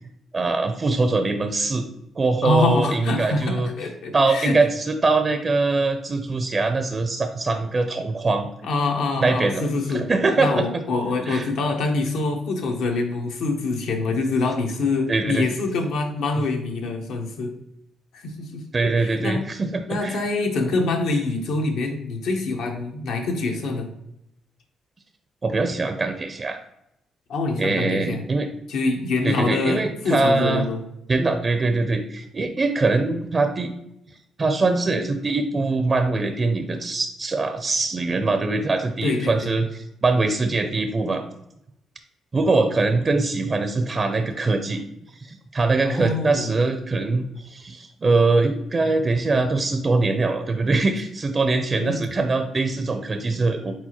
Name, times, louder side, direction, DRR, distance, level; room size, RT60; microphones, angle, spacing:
voice 1, 0.3-1.9 2.2-3.7 4.1-8.5 9.2-10.8 11.3-11.5 15.1-15.5 18.7-20.2 25.4-26.6 27.6-28.5 29.2-30.6 31.1-33.7 34.4-41.2 42.3-44.8 45.2-53.7, right 3 dB, 35° right, 6 dB, 0.4 m, -22 dB
voice 2, 2.4-4.6 8.6-10.1 10.4-17.5 18.1-19.4 19.9-23.9 27.3-28.2 28.7-30.8 39.0-39.5 45.8-46.5 51.8-52.0, left 3 dB, 80° left, 3 dB, 0.9 m, -25 dB
4.6 x 3.9 x 2.9 m, 0.81 s
cardioid pair, 90°, 0 cm